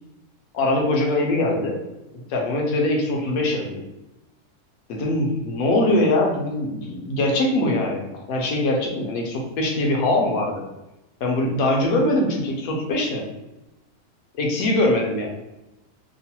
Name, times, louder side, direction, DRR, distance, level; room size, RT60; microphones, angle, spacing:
voice 1, 0.5-1.8 2.3-3.8 4.9-10.6 11.2-13.2 14.3-15.3, left 1 dB, 75° left, 0 dB, 1.0 m, -22 dB
3.0 x 2.1 x 2.8 m, 0.95 s
omnidirectional pair, 1.6 m